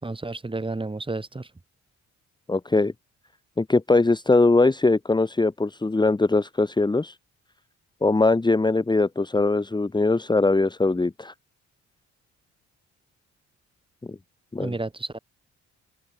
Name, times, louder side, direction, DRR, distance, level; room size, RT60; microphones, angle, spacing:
voice 1, 0.0-1.5 14.6-15.2, right 2 dB, 15° right, 5.3 m, -31 dB
voice 2, 2.5-2.9 3.6-7.1 8.0-11.3 14.5-14.7, left 3 dB, 15° left, 1.5 m, -21 dB
open air
cardioid pair, 90°, 30 cm